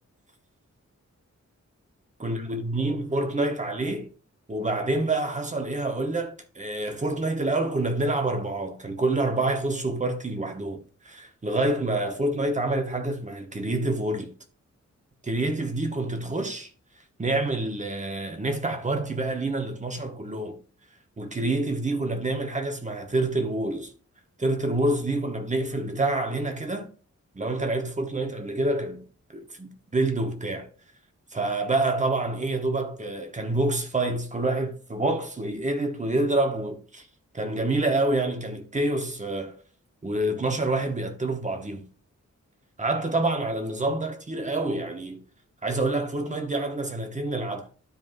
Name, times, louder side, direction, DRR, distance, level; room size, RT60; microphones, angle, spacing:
voice 1, 2.2-4.1 4.5-14.3 15.2-16.7 17.2-20.6 21.2-23.9 24.4-26.9 27.3-29.1 29.3-30.7 31.3-37.1 37.3-39.6 40.0-41.9 42.8-45.2 45.6-47.7, right 2 dB, 25° right, 1.2 m, -27 dB
13.0 x 4.7 x 2.6 m
wide cardioid pair, 170°, 29 cm